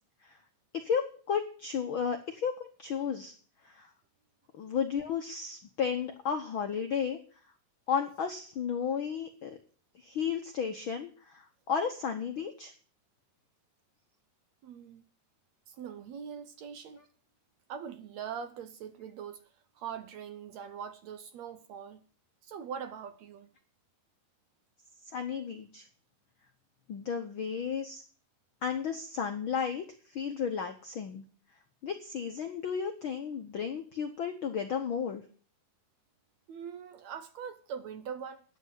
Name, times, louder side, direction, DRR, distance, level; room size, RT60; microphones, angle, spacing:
voice 1, 0.7-3.3 3.6-3.9 4.5-7.2 7.9-9.6 10.0-12.7 25.1-25.9 26.9-28.0 28.6-31.2 31.8-35.2, left 7 dB, 70° left, 1.2 m, -33 dB
voice 2, 14.6-15.0 15.7-17.0 17.7-19.5 19.8-22.0 22.4-23.5 36.5-38.4, right 7 dB, 70° right, 1.8 m, -42 dB
10.5 x 8.1 x 9.2 m
omnidirectional pair, 3.8 m